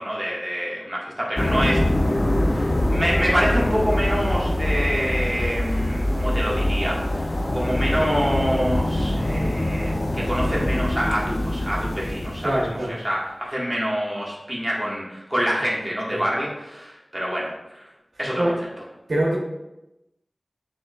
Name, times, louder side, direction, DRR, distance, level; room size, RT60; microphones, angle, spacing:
voice 1, 0.0-1.8 2.5-12.6 12.9-17.9 18.2-18.5, equal, 10° right, -5 dB, 1.4 m, -26 dB
sound 1, 1.4-12.7, left 1 dB, 50° left, 0.5 m, -24 dB
voice 2, 12.4-13.0 16.1-16.2 18.4-18.6 19.1-19.4, right 1 dB, 75° right, -3 dB, 0.9 m, -23 dB
6.2 x 3.2 x 2.3 m, 0.94 s
wide cardioid pair, 45°, 0 cm